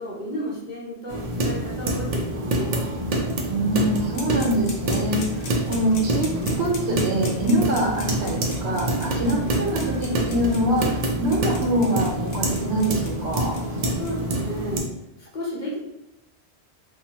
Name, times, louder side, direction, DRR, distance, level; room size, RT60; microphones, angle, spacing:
voice 1, 0.0-2.8 14.0-14.9 15.3-15.8, left 1 dB, 50° left, -4 dB, 0.7 m, -33 dB
sound 1, 1.1-14.8, right 1 dB, 60° right, 0.4 m, -26 dB
voice 2, 3.5-13.6, right 1 dB, 80° right, -2 dB, 1.0 m, -24 dB
sound 2, 4.1-14.1, left 3 dB, 80° left, 0.9 m, -39 dB
2.7 x 2.1 x 2.8 m, 0.88 s
omnidirectional pair, 1.1 m